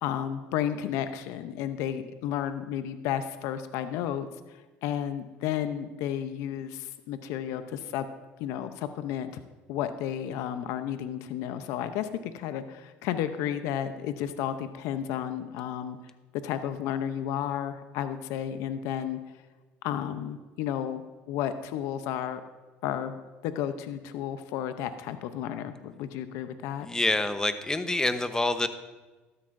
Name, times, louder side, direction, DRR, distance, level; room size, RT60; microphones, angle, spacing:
voice 1, 0.0-4.3 4.8-8.1 8.4-9.3 9.7-16.0 16.4-19.2 19.8-21.0 21.3-22.4 22.8-23.1 23.4-26.9, left 10 dB, 75° left, 10 dB, 0.7 m, -32 dB
voice 2, 26.8-28.7, left 2 dB, 10° left, 10 dB, 0.9 m, -27 dB
13.0 x 12.5 x 2.6 m, 1.2 s
supercardioid pair, 80°, 5 cm